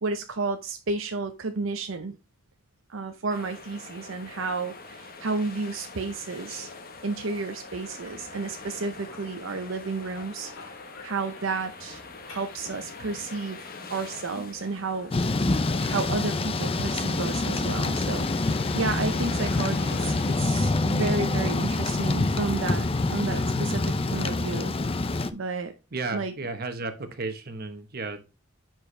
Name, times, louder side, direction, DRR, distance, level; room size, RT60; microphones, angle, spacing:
voice 1, 0.0-2.2 2.9-6.7 7.0-10.5 11.0-15.1 15.7-18.5 18.7-24.7 25.3-25.7 26.1-26.3, right 3 dB, 80° right, 0.7 m, -32 dB
sound 1, 3.3-20.4, left 4 dB, 45° left, 1.1 m, -45 dB
sound 2, 5.1-21.5, left 3 dB, 80° left, 2.3 m, -49 dB
Thunder / Rain, 15.1-25.3, left 2 dB, 30° left, 0.5 m, -26 dB
voice 2, 25.9-28.2, right 3 dB, 50° right, 1.2 m, -34 dB
9.5 x 4.6 x 3.3 m
head